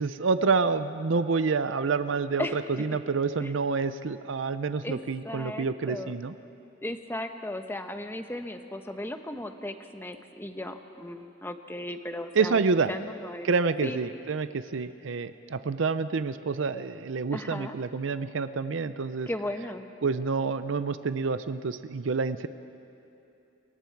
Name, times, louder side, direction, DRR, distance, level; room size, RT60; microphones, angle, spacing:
voice 1, 0.0-6.3 12.4-12.9 13.4-19.3 20.0-22.5, right 4 dB, 75° right, 12 dB, 0.6 m, -28 dB
voice 2, 5.2-6.1 6.8-12.6 12.9-13.5 13.8-14.0 17.3-17.8 19.3-19.9, left 1 dB, 10° left, 6 dB, 1.0 m, -36 dB
27.5 x 23.5 x 4.7 m, 2.8 s
head